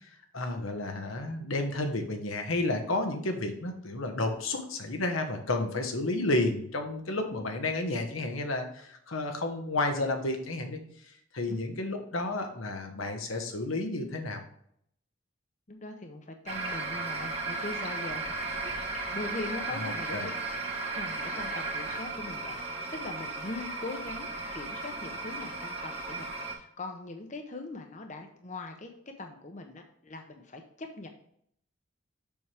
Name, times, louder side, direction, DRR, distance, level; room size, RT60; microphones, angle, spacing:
voice 1, 0.3-10.8 11.3-14.4 19.8-20.3, left 2 dB, 85° left, 4 dB, 1.2 m, -31 dB
voice 2, 15.7-18.4 18.6-20.3 20.9-31.1, left 2 dB, 35° left, 4 dB, 0.7 m, -41 dB
sound 1, 16.5-26.5, right 3 dB, 30° right, 1.2 m, -35 dB
7.0 x 6.1 x 3.4 m, 0.67 s
head